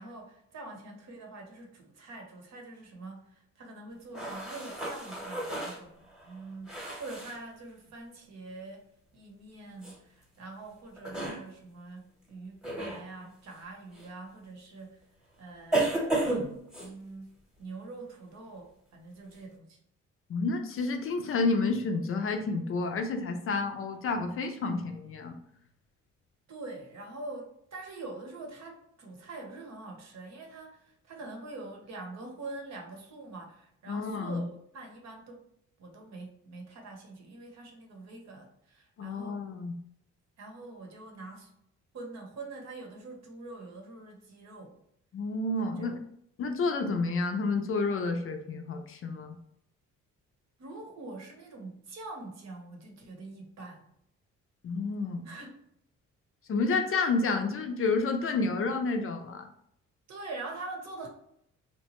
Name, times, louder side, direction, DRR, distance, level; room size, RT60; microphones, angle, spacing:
voice 1, 0.0-8.9 9.1-15.0 15.4-15.9 16.8-19.8 26.5-35.4 35.8-39.4 40.4-41.5 41.9-44.7 45.6-46.0 50.6-53.9 55.2-55.6 60.1-61.1, right 2 dB, 60° right, 2 dB, 0.8 m, -44 dB
sound 1, 4.1-7.4 9.8-10.0 11.0-11.4 12.6-13.0 13.9-14.1 15.7-16.9, right 2 dB, ahead, 0.9 m, -32 dB
voice 2, 20.3-25.3 33.9-34.4 39.0-39.7 45.1-46.0 46.4-49.4 54.6-55.3 56.5-59.4, left 3 dB, 45° left, 6 dB, 0.5 m, -30 dB
2.9 x 2.2 x 2.9 m, 0.73 s
cardioid pair, 90°, 30 cm